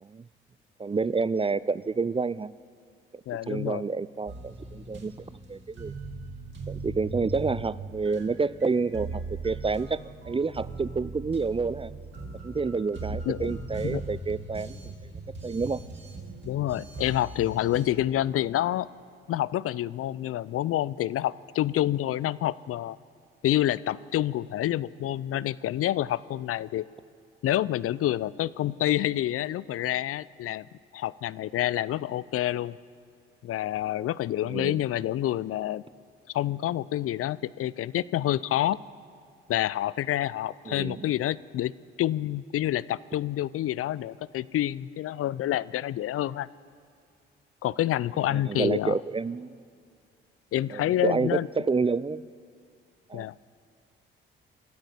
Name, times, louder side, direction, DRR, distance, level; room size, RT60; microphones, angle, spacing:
voice 1, 0.8-2.5 3.5-5.1 5.5-5.9 6.7-10.0 10.2-11.9 12.4-14.8 15.4-15.8 34.4-34.8 40.7-41.1 48.3-49.6 50.7-52.2 53.1-53.3, right 4 dB, 20° right, 18 dB, 0.5 m, -29 dB
voice 2, 3.3-3.8 13.3-13.5 13.8-14.0 16.4-18.9 19.3-23.0 23.4-26.9 27.4-30.7 30.9-32.8 33.4-35.8 36.3-38.8 39.5-41.7 42.0-46.5 47.6-49.0 50.5-51.5 53.1-53.3, left 13 dB, 50° left, 20 dB, 0.6 m, -28 dB
sound 1, 4.3-17.9, right 3 dB, 40° right, 5.2 m, -39 dB
26.5 x 13.0 x 8.4 m, 2.2 s
hypercardioid pair, 50°, 29 cm